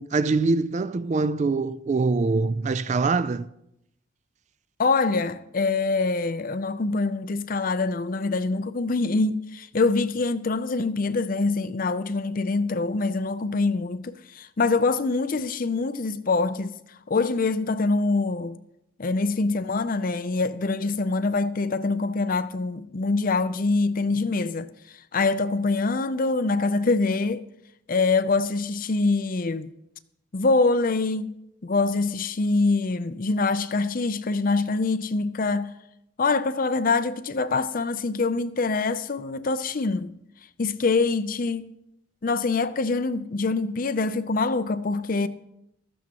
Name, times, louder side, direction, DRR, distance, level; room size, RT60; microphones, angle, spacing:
voice 1, 0.0-3.5, right 3 dB, 35° right, 0.3 m, -24 dB
voice 2, 4.8-16.8 17.1-18.6 19.0-24.7 25.1-27.4 27.9-29.7 30.3-31.4 31.6-35.7 36.2-40.1 40.6-41.6 42.2-45.3, left 3 dB, 40° left, 0.5 m, -24 dB
15.5 x 13.5 x 2.9 m
head